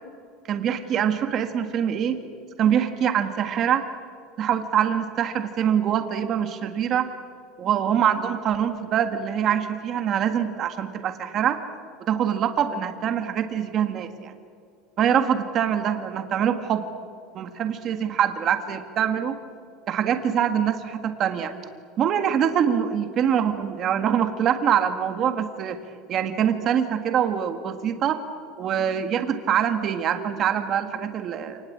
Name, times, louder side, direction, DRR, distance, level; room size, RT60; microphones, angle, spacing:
voice 1, 0.5-2.2 2.6-3.8 4.4-7.1 7.6-11.6 12.1-14.3 15.0-16.8 17.3-19.4 19.9-21.5 22.0-25.8 26.1-28.2 28.6-31.6, right 9 dB, 30° right, 7 dB, 1.7 m, -24 dB
28.0 x 19.5 x 8.6 m, 2.2 s
cardioid pair, 175°, 0 cm